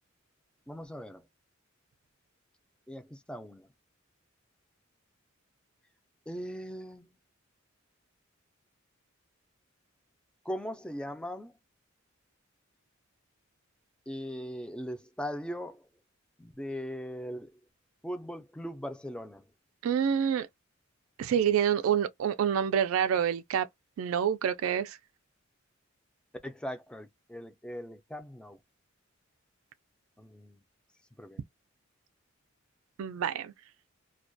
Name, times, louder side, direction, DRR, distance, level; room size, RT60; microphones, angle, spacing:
voice 1, 0.7-1.3 2.9-3.7 6.3-7.1 10.4-11.6 14.1-15.9 16.4-17.6 18.0-19.5 26.4-28.6 30.2-30.6 31.2-31.4, equal, 5° left, 0.3 m, -39 dB
voice 2, 19.8-20.5 21.2-23.7 24.0-25.0 33.0-33.5, right 8 dB, 85° right, 0.3 m, -27 dB
2.3 x 2.1 x 2.5 m
head